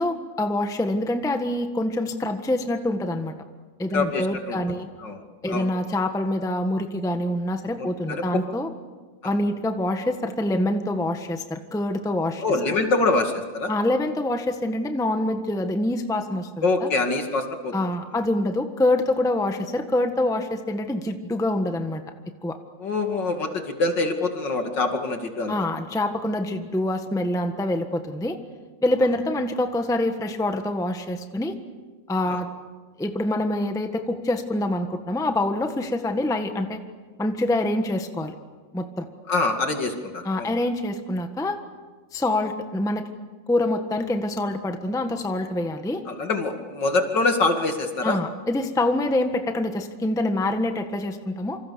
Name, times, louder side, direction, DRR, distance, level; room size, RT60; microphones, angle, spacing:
voice 1, 0.0-3.3 3.8-4.9 5.4-8.7 9.2-12.4 13.7-16.9 17.7-22.0 22.4-22.6 25.5-28.4 28.8-31.6 32.1-32.5 33.0-36.8 37.2-38.4 38.7-39.0 40.2-41.6 42.1-43.1 43.5-46.0 48.0-51.6, left 1 dB, ahead, 6 dB, 1.2 m, -25 dB
voice 2, 3.9-4.6 5.0-5.2 5.5-5.7 7.7-8.2 9.2-9.4 12.4-13.7 16.6-17.9 22.8-25.5 32.3-32.4 39.3-40.5 46.1-48.2, left 3 dB, 60° left, 4 dB, 3.0 m, -25 dB
27.5 x 26.0 x 7.0 m, 1.4 s
omnidirectional pair, 2.2 m